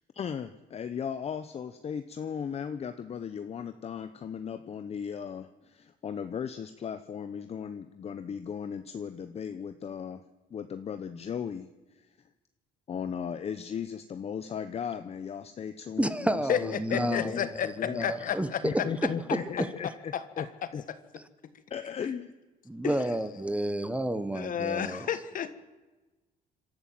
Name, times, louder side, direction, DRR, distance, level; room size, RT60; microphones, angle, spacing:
voice 1, 0.1-10.2 10.5-11.7 11.9-12.1 12.9-18.1 18.6-20.5 20.7-20.8 21.7-22.3, left 7 dB, 35° left, 10 dB, 0.8 m, -36 dB
voice 2, 16.0-17.3 17.9-18.8 19.6-19.7 22.7-25.1, right 1 dB, 5° right, 12 dB, 1.0 m, -30 dB
voice 3, 16.5-17.7 18.0-18.6 19.3-19.4 20.1-20.2 22.8-23.0 24.3-25.5, left 9 dB, 55° left, 12 dB, 1.5 m, -31 dB
27.0 x 13.0 x 7.7 m, 1.2 s
cardioid pair, 110°, 17 cm